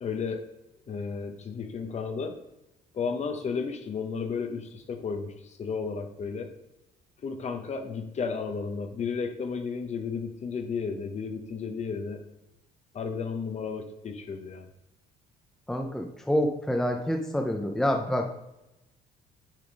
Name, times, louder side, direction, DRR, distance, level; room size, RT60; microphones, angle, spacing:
voice 1, 0.0-0.4 0.9-2.3 2.9-6.5 7.2-12.2 12.9-14.7, left 5 dB, 40° left, 6 dB, 0.9 m, -33 dB
voice 2, 15.7-18.3, equal, 5° left, 4 dB, 0.7 m, -27 dB
9.1 x 3.5 x 4.8 m, 0.91 s
cardioid pair, 110°, 17 cm